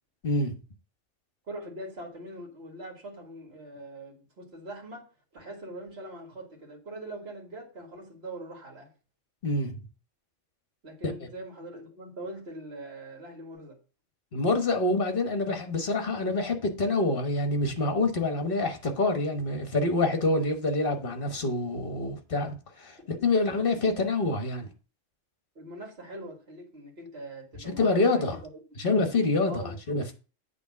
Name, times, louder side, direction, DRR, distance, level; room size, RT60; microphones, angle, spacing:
voice 1, 0.2-0.5 9.4-9.8 11.0-11.1 14.3-24.7 27.6-28.4 28.8-30.1, left 2 dB, 50° left, 1.4 m, -26 dB
voice 2, 1.5-5.1 5.3-8.9 10.8-13.8 23.0-23.3 23.7-23.8 25.6-28.4 29.5-30.0, right 1 dB, 55° right, 2.0 m, -42 dB
8.3 x 3.5 x 5.9 m
omnidirectional pair, 1.3 m